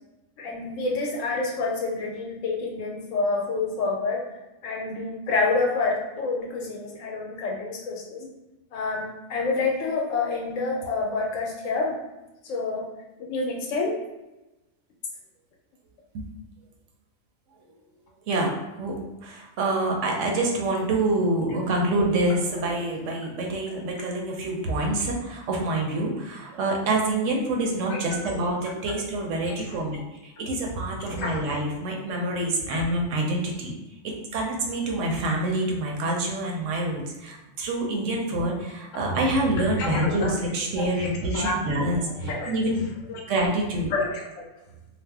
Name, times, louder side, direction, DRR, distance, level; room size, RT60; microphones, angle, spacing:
voice 1, 0.4-4.2 4.6-8.3 8.7-12.0 12.4-12.9 13.3-14.0 27.9-28.4 28.9-29.0 29.5-29.8 31.1-31.4 32.7-32.8 39.8-40.3 40.8-41.6 42.2-42.5 43.1-43.2 43.9-44.4, left 3 dB, 80° left, -1 dB, 1.0 m, -28 dB
voice 2, 18.3-33.7 34.0-42.8 43.3-43.9, right 2 dB, 75° right, 0 dB, 0.9 m, -26 dB
2.6 x 2.0 x 3.3 m, 1.0 s
omnidirectional pair, 1.3 m